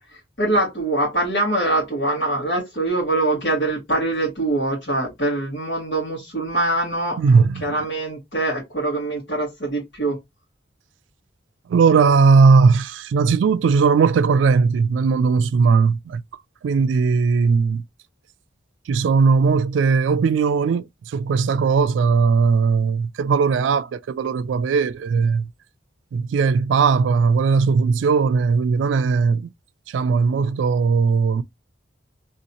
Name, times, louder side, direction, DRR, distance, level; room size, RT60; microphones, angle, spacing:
voice 1, 0.1-10.2, right 2 dB, 70° left, 1.7 m, -23 dB
voice 2, 7.2-7.8 11.7-16.2 16.6-17.8 18.9-25.5 26.1-29.5 29.9-31.4, right 5 dB, 85° right, 0.3 m, -18 dB
3.1 x 2.8 x 2.7 m
head